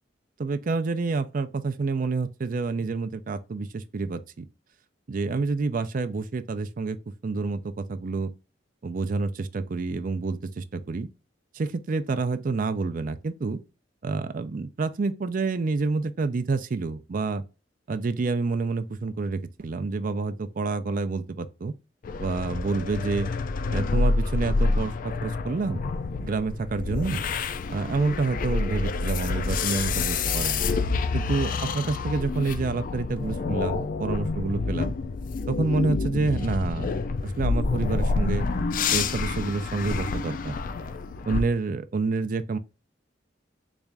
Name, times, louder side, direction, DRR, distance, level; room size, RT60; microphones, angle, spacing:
voice 1, 0.4-4.5 5.1-7.0 7.2-8.3 8.8-11.1 11.5-13.6 14.0-17.4 17.9-21.7 22.2-23.3 23.7-25.8 26.2-27.2 27.7-30.6 31.1-34.9 35.5-36.9 37.2-38.5 38.9-40.5 41.2-42.6, right 3 dB, 50° right, 0.4 m, -28 dB
sound 1, 22.0-41.4, left 4 dB, 50° left, 0.4 m, -28 dB
4.1 x 2.5 x 3.4 m
head